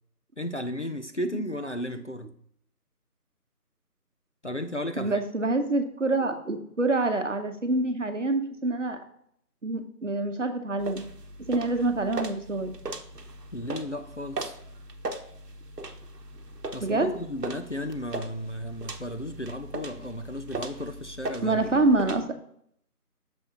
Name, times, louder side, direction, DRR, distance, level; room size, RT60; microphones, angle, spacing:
voice 1, 0.4-2.3 4.4-5.2 13.5-14.5 16.7-21.6, left 1 dB, 50° left, 7 dB, 0.4 m, -34 dB
voice 2, 5.0-9.0 9.6-11.0 11.4-12.7 16.8-17.1 21.4-22.3, right 2 dB, 50° right, 7 dB, 0.9 m, -26 dB
sound 1, 10.8-22.2, right 2 dB, 80° right, 1.0 m, -39 dB
6.9 x 6.0 x 2.9 m, 0.68 s
figure-of-eight pair, 165°, 48 cm